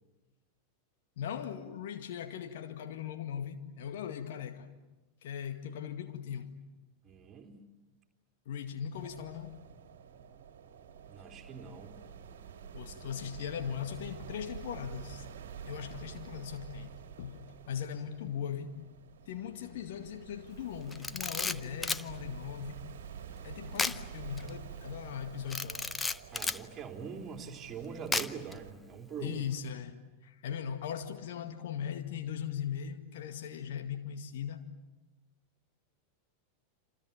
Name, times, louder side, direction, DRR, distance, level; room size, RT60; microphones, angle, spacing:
voice 1, 1.2-4.7 5.2-6.6 8.5-9.6 12.7-15.3 15.6-18.8 19.3-22.9 23.4-25.9 29.2-34.7, left 8 dB, 55° left, 1.9 m, -39 dB
voice 2, 7.0-7.6 11.1-11.9 26.3-29.4, right 6 dB, 25° right, 3.8 m, -43 dB
sound 1, 8.9-28.7, right 7 dB, 60° right, 2.1 m, -48 dB
Camera, 20.9-22.1 23.8-24.0 24.4-24.5 25.5-26.6 28.1-28.5, left 3 dB, 10° left, 0.8 m, -33 dB
28.5 x 28.0 x 7.3 m
figure-of-eight pair, 90°, 0 cm